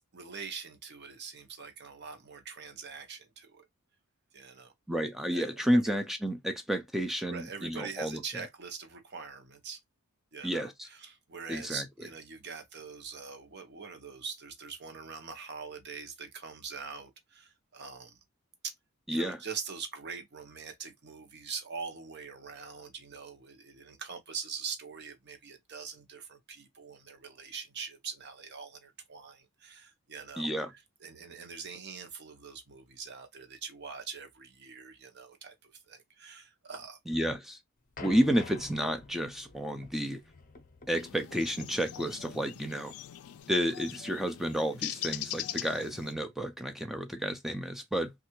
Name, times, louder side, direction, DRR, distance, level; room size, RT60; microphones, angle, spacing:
voice 1, 0.1-3.7 4.3-4.7 5.3-5.5 5.7-5.8 7.3-9.8 10.3-18.2 18.6-18.7 19.1-30.5 31.0-37.0, right 5 dB, 50° right, 0.8 m, -43 dB
voice 2, 4.9-8.2 10.4-10.9 11.5-11.9 19.1-19.4 30.4-30.7 37.1-37.6 38.0-40.2 40.9-42.9 43.5-48.1, equal, ahead, 0.4 m, -31 dB
sound 1, 38.0-43.4, left 3 dB, 40° left, 0.7 m, -49 dB
sound 2, 40.9-46.1, left 13 dB, 80° left, 0.4 m, -41 dB
3.2 x 2.4 x 3.0 m
head